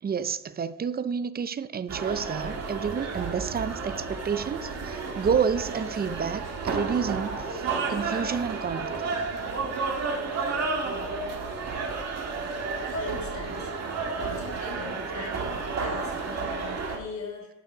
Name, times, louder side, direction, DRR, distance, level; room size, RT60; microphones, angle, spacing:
voice 1, 0.0-9.0, right 6 dB, 30° right, 0.5 m, -30 dB
sound 1, 1.9-17.0, right 4 dB, 60° right, 1.9 m, -31 dB
voice 2, 12.9-13.7 14.0-17.5, left 3 dB, 65° left, 3.3 m, -39 dB
11.0 x 5.8 x 4.9 m
cardioid pair, 90°, 30 cm